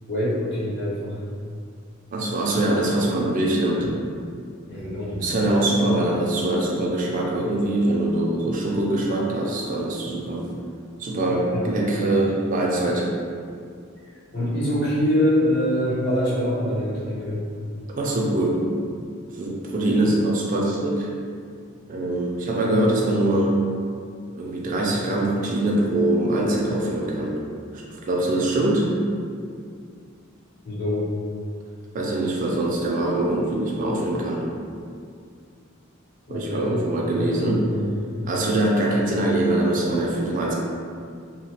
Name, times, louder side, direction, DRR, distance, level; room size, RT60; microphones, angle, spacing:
voice 1, 0.1-1.2 4.7-5.2 11.5-11.7 14.3-17.4 30.6-31.0 36.3-36.8 37.2-37.9, left 1 dB, 55° left, -9 dB, 0.9 m, -24 dB
voice 2, 2.1-3.9 5.2-10.5 11.0-13.1 17.9-18.6 19.4-21.1 21.9-23.5 24.4-27.4 27.7-28.9 31.9-34.4 36.3-37.7 38.2-40.5, right 1 dB, 40° right, -2 dB, 0.3 m, -23 dB
2.9 x 2.0 x 2.8 m, 2.2 s
head